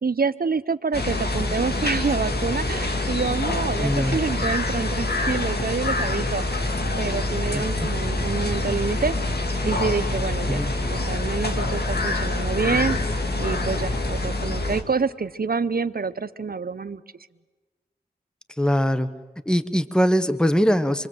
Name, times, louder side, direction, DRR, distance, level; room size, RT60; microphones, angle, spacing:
voice 1, 0.0-6.7 7.0-9.2 9.6-10.6 10.9-13.0 13.4-17.0, right 4 dB, 65° right, 13 dB, 0.8 m, -27 dB
sound 1, 0.9-14.8, left 2 dB, 80° left, 2.1 m, -26 dB
voice 2, 3.8-4.2 7.5-7.9 10.5-10.7 18.5-19.1 19.4-21.1, equal, 5° left, 11 dB, 1.2 m, -22 dB
sound 2, 5.2-5.7 5.9-7.9 8.2-8.6 8.9-9.4 9.7-10.0 10.5-10.6 10.8-13.2 13.5-14.0, equal, 30° left, 4.0 m, -38 dB
26.5 x 22.5 x 7.9 m, 1.3 s
cardioid pair, 40°, 16 cm